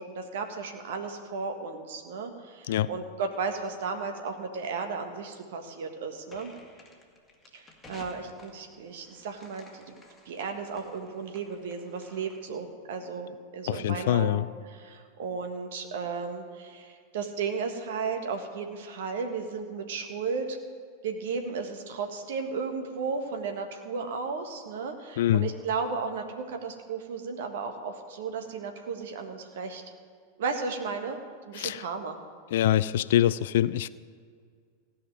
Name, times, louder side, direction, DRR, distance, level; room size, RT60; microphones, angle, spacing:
voice 1, 0.0-6.5 7.5-10.0 10.2-14.4 14.7-20.6 21.0-29.8 30.4-31.2 31.5-32.2, right 5 dB, 55° right, 5 dB, 1.6 m, -34 dB
sound 1, 6.3-12.6, left 2 dB, 10° left, 2.1 m, -54 dB
voice 2, 13.7-14.5 25.2-25.5 31.5-31.9 32.5-33.9, left 12 dB, 55° left, 17 dB, 0.4 m, -24 dB
16.0 x 5.8 x 9.4 m, 2.1 s
figure-of-eight pair, 90°, 0 cm